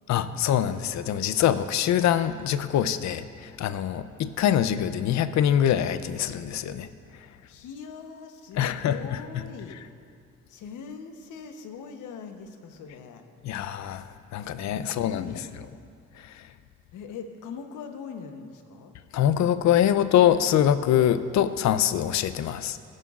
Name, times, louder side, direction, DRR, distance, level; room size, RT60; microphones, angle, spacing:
voice 1, 0.1-6.9 8.6-9.2 13.4-14.1 14.3-15.2 16.2-16.5 19.1-22.8, left 10 dB, 65° left, 13 dB, 0.5 m, -24 dB
voice 2, 7.5-9.8 10.5-13.2 14.7-15.5 16.9-19.0, left 6 dB, 80° left, 6 dB, 1.0 m, -41 dB
16.5 x 11.0 x 2.4 m, 2.3 s
cardioid pair, 90°, 30 cm